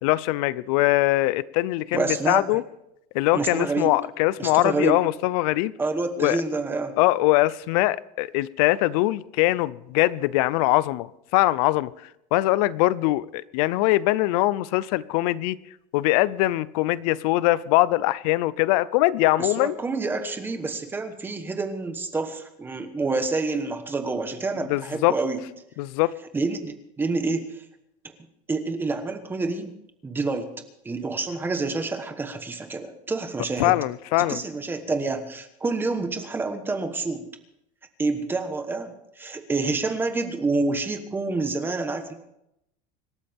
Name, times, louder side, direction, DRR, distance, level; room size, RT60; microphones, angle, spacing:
voice 1, 0.0-2.6 3.1-5.7 6.2-6.4 7.0-11.9 12.3-15.6 15.9-19.8 24.7-25.1 25.8-26.1 33.6-34.4, left 18 dB, 80° left, 20 dB, 0.6 m, -22 dB
voice 2, 1.9-2.5 3.3-3.9 4.4-5.0 5.8-7.0 19.4-25.4 26.3-27.6 28.5-29.7 30.0-30.5 30.8-33.8 34.3-37.3 38.0-42.1, right 3 dB, 10° right, 7 dB, 1.2 m, -28 dB
26.0 x 12.5 x 3.6 m, 0.83 s
cardioid pair, 180°, 19 cm